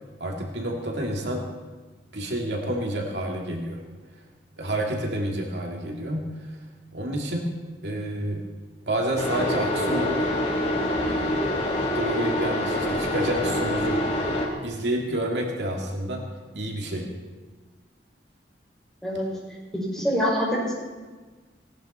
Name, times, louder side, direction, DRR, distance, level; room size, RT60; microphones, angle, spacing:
voice 1, 0.2-1.5 2.1-3.8 4.6-6.5 6.9-7.4 7.8-8.4 8.9-10.3 11.1-11.5 11.9-14.0 14.6-16.2 16.5-17.1, right 1 dB, 70° right, 0 dB, 2.5 m, -29 dB
sound 1, 9.2-14.5, left 1 dB, 35° left, 3.3 m, -25 dB
voice 2, 19.9-20.7, equal, 5° left, -5 dB, 6.0 m, -24 dB
18.5 x 17.5 x 4.4 m, 1.3 s
head